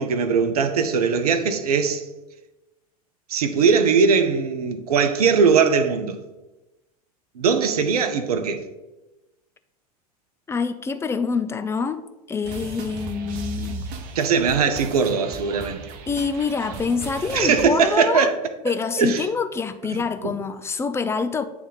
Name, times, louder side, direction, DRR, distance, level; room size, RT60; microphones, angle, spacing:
voice 1, 0.0-2.0 3.3-6.2 7.4-8.6 14.1-15.8 17.3-18.3 18.7-19.2 19.9-20.3, right 5 dB, 75° right, 0.7 m, -20 dB
voice 2, 10.5-13.9 16.1-18.3 18.6-21.5, left 5 dB, 15° left, 0.4 m, -26 dB
sound 1, 12.4-17.7, right 4 dB, 50° right, 0.9 m, -36 dB
8.4 x 3.4 x 3.9 m
figure-of-eight pair, 85°, 20 cm